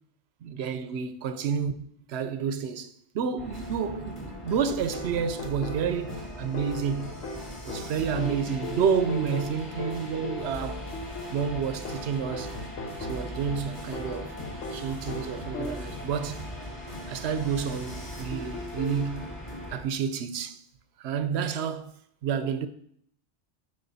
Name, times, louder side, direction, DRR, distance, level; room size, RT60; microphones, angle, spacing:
voice 1, 0.4-1.7 2.1-7.2 7.7-10.8 11.3-12.5 13.0-14.4 14.7-16.5 17.1-19.3 19.7-20.6 21.0-21.9 22.2-22.7, right 7 dB, 65° right, 0.8 m, -30 dB
sound 1, 3.4-19.8, left 1 dB, 25° left, 2.2 m, -40 dB
sound 2, 4.5-16.1 18.3-19.1, left 2 dB, 80° left, 1.2 m, -39 dB
sound 3, 10.4-18.3, equal, 60° left, 2.6 m, -45 dB
9.9 x 5.0 x 4.1 m
omnidirectional pair, 1.3 m